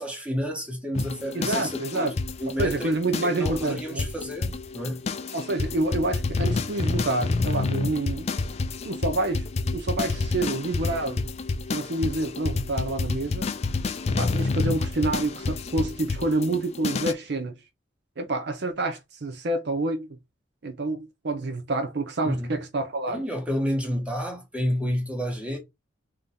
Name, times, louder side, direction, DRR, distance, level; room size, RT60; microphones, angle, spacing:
voice 1, 0.0-2.9 3.2-5.1 22.2-22.6 23.1-25.6, equal, 5° right, 1.2 m, -30 dB
sound 1, 0.9-17.1, left 3 dB, 35° left, 0.3 m, -29 dB
voice 2, 1.3-2.1 2.6-4.0 5.3-8.3 8.8-9.4 9.7-11.3 11.7-13.5 14.2-17.5 18.2-20.1 20.6-23.2, right 2 dB, 55° right, 0.6 m, -28 dB
3.8 x 2.8 x 3.4 m
head